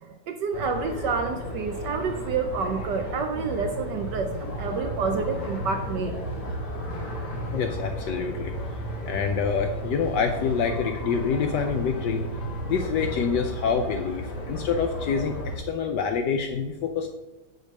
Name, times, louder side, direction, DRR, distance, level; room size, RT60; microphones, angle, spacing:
voice 1, 0.0-6.2, right 5 dB, 70° right, 6 dB, 1.1 m, -29 dB
sound 1, 0.5-15.6, equal, 55° left, 2.1 m, -34 dB
voice 2, 7.5-8.5 9.0-12.2 12.7-17.1, left 6 dB, 75° left, 5 dB, 1.0 m, -26 dB
6.3 x 5.1 x 6.3 m, 1.1 s
omnidirectional pair, 2.3 m